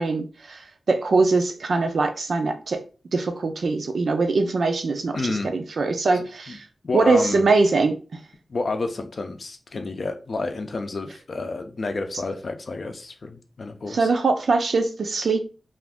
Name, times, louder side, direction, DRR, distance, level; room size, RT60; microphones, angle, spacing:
voice 1, 0.0-2.8 3.1-6.6 6.9-8.2 13.9-15.4, right 3 dB, 75° right, 0.5 m, -22 dB
voice 2, 5.1-5.5 6.5-6.6 6.8-7.5 8.5-14.1, left 3 dB, 60° left, 0.5 m, -29 dB
2.5 x 2.5 x 3.5 m
wide cardioid pair, 105°, 0 cm